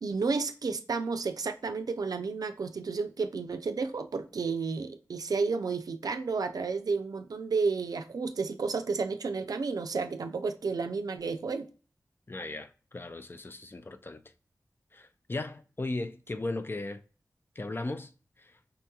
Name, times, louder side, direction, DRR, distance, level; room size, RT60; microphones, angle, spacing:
voice 1, 0.0-11.7, right 4 dB, 70° right, 0.4 m, -31 dB
voice 2, 12.3-14.2 14.9-17.0 17.6-18.1 18.4-18.5, left 2 dB, 35° left, 0.4 m, -37 dB
5.2 x 2.2 x 2.8 m
cardioid pair, 40°, 7 cm